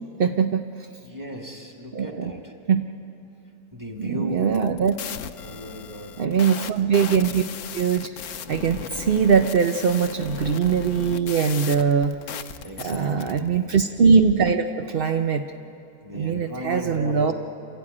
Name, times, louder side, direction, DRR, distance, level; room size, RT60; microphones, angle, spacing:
voice 1, 0.2-0.9 1.9-2.3 2.7-2.8 4.0-5.0 6.2-7.4 7.7-12.5 12.8-15.5 16.1-17.3, right 6 dB, 60° right, 6 dB, 0.6 m, -22 dB
voice 2, 1.0-2.5 3.7-4.5 5.4-6.2 12.6-13.6 16.0-17.3, equal, 10° right, 1 dB, 2.2 m, -36 dB
sound 1, 4.4-13.4, left 8 dB, 65° left, 1.2 m, -36 dB
28.0 x 14.0 x 9.7 m, 2.8 s
omnidirectional pair, 1.8 m